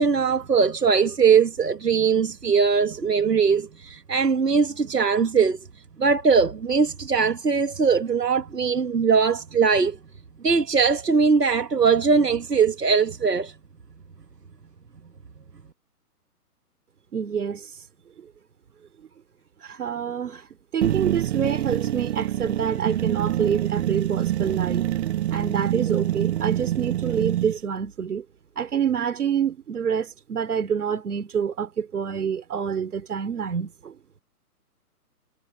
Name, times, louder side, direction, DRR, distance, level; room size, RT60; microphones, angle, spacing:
voice 1, 0.0-5.6 6.0-10.0 10.4-13.5, right 5 dB, 90° right, 1.6 m, -21 dB
voice 2, 17.1-17.7 18.2-18.3 19.6-20.5 20.7-24.9 25.3-28.2 28.6-34.0, right 7 dB, 70° right, 3.3 m, -27 dB
sound 1, 20.8-27.6, right 12 dB, 45° right, 1.4 m, -26 dB
figure-of-eight pair, 135°, 47 cm